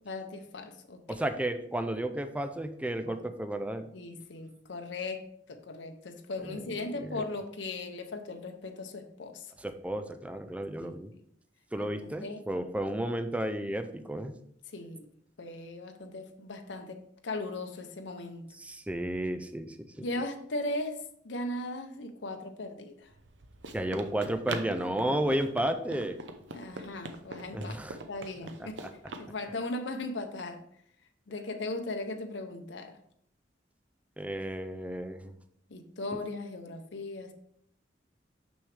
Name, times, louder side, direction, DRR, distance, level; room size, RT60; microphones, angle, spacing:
voice 1, 0.0-1.2 3.1-3.2 3.9-9.5 10.8-10.9 11.8-12.4 14.7-15.1 15.4-18.5 20.0-21.0 21.2-23.1 26.5-28.8 29.2-30.6 31.3-33.0 35.7-37.3, left 2 dB, 85° left, 5 dB, 0.8 m, -38 dB
voice 2, 1.1-3.9 6.4-7.2 9.6-11.1 11.7-14.3 18.6-20.1 23.7-26.2 27.5-28.0 28.8-28.9 34.2-35.3, right 1 dB, 5° right, 8 dB, 0.4 m, -33 dB
Run, 23.1-29.3, right 2 dB, 75° right, 0.7 m, -43 dB
6.3 x 6.2 x 3.4 m, 0.68 s
head